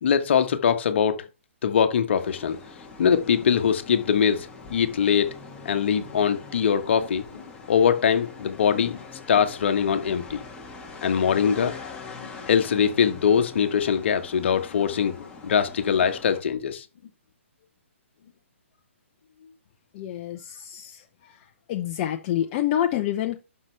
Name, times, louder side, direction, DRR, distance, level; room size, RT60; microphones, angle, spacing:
voice 1, 0.0-1.2 1.6-2.6 3.0-5.3 5.6-9.0 9.3-10.4 11.0-11.8 12.2-16.8, left 7 dB, 55° left, 1.3 m, -22 dB
sound 1, 2.1-16.4, left 4 dB, 10° left, 1.9 m, -43 dB
voice 2, 19.9-23.4, left 11 dB, 35° left, 0.7 m, -28 dB
11.5 x 5.7 x 3.4 m
hypercardioid pair, 135°, 7 cm